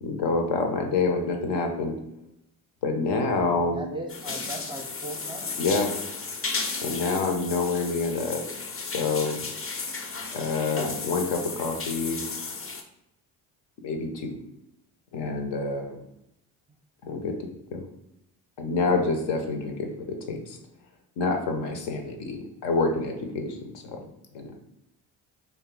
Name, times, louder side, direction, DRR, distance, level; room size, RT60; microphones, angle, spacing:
voice 1, 0.0-2.0 2.8-3.8 5.6-5.9 6.8-8.4 8.8-9.4 10.3-12.2 13.8-14.4 15.1-16.0 17.0-17.3 17.7-17.8 18.6-20.6 21.2-24.0 24.3-24.5, left 3 dB, 70° left, 4 dB, 0.7 m, -27 dB
voice 2, 3.6-5.5, right 1 dB, 10° right, 1 dB, 0.5 m, -38 dB
sound 1, 4.1-12.8, left 4 dB, 30° left, 0.6 m, -34 dB
2.6 x 2.3 x 3.7 m, 0.84 s
hypercardioid pair, 55°, 44 cm